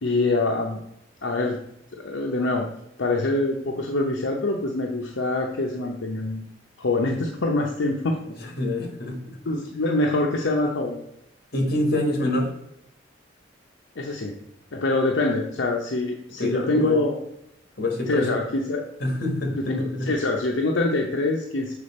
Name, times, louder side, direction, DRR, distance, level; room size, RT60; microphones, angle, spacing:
voice 1, 0.0-0.8 1.2-1.6 2.0-2.7 3.0-6.4 6.8-8.2 9.5-11.0 14.0-14.3 14.7-17.2 18.1-18.8 19.7-21.7, left 2 dB, 80° left, 1 dB, 0.7 m, -24 dB
voice 2, 8.3-9.4 11.5-12.5 16.4-17.0 17.8-18.4 19.0-20.1, left 1 dB, 55° left, 3 dB, 1.5 m, -26 dB
6.8 x 4.3 x 4.2 m, 0.80 s
head